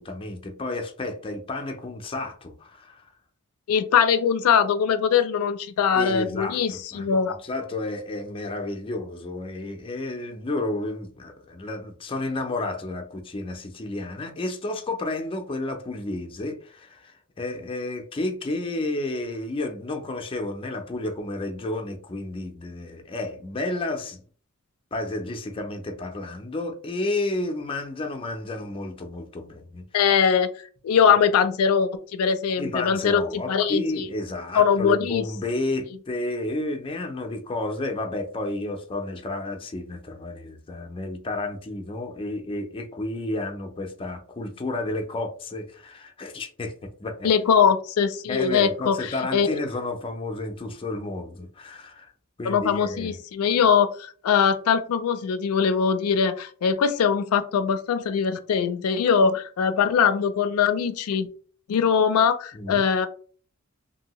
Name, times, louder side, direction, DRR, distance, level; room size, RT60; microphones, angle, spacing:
voice 1, 0.0-3.1 5.9-24.2 24.9-29.8 32.6-47.3 48.3-52.1 52.4-53.2 62.5-62.9, left 2 dB, 25° left, 0.4 m, -31 dB
voice 2, 3.7-7.4 29.9-30.5 30.8-33.2 33.5-34.1 34.5-35.2 47.2-49.0 49.3-49.5 52.5-61.3 61.7-63.1, left 7 dB, 90° left, 0.4 m, -21 dB
2.7 x 2.7 x 2.9 m
head